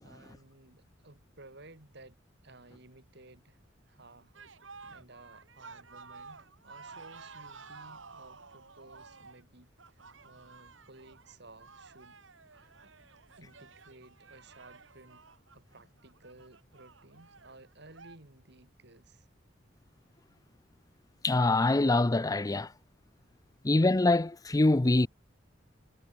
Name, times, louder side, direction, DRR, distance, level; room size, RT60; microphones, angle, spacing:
voice 1, 0.0-3.6 3.9-4.4 4.7-12.2 12.4-12.9 13.4-15.2 15.5-19.3, right 2 dB, 60° right, 4.8 m, -56 dB
sound 1, 4.3-18.2, right 4 dB, 80° right, 2.8 m, -52 dB
voice 2, 21.2-22.7 23.6-25.1, left 2 dB, 20° left, 0.5 m, -24 dB
head